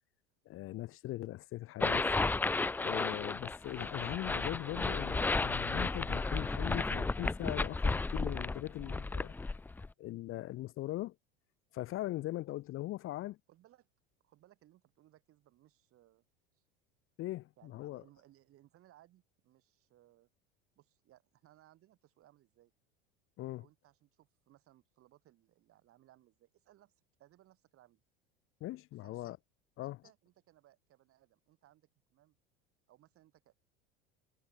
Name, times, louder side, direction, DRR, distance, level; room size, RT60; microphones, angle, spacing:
voice 1, 0.5-2.1 2.8-9.3 10.0-11.1 11.7-13.4 17.2-18.0 23.4-23.7 28.6-29.4 29.8-30.0, left 16 dB, 45° left, 1.0 m, -40 dB
sound 1, 1.8-9.9, left 3 dB, 5° left, 0.3 m, -33 dB
voice 2, 13.5-13.9 14.2-16.2 17.6-20.3 20.8-22.7 23.6-26.9 27.2-28.0 29.0-29.3 29.8-32.4 32.9-33.5, right 14 dB, 50° right, 6.6 m, -65 dB
hypercardioid pair, 90°, 29 cm